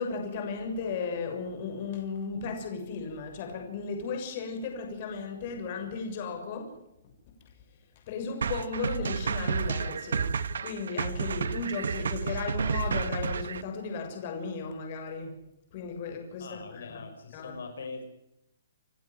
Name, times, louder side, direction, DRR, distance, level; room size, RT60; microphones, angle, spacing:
voice 1, 0.0-6.7 8.1-15.4 15.7-17.0 17.3-17.5, left 5 dB, 40° left, 4 dB, 7.0 m, -35 dB
sound 1, 8.4-13.6, right 6 dB, 80° right, 1.7 m, -31 dB
voice 2, 16.4-18.1, left 4 dB, 80° left, 6 dB, 6.0 m, -42 dB
29.5 x 12.5 x 9.6 m, 0.83 s
hypercardioid pair, 160°, 0 cm